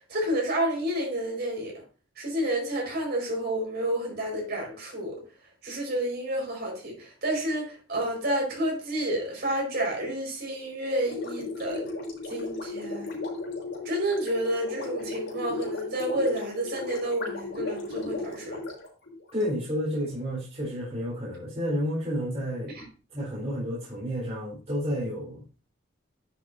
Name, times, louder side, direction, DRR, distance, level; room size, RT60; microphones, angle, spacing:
voice 1, 0.0-1.8 2.2-5.2 5.6-11.9 12.3-13.1 13.8-18.6 22.7-22.8, right 1 dB, 55° right, 4.9 m, -30 dB
Gurgling, 11.0-19.4, left 2 dB, 65° left, 4.1 m, -35 dB
voice 2, 19.3-22.7 23.1-25.4, equal, 35° right, 3.9 m, -31 dB
10.0 x 8.1 x 2.7 m
head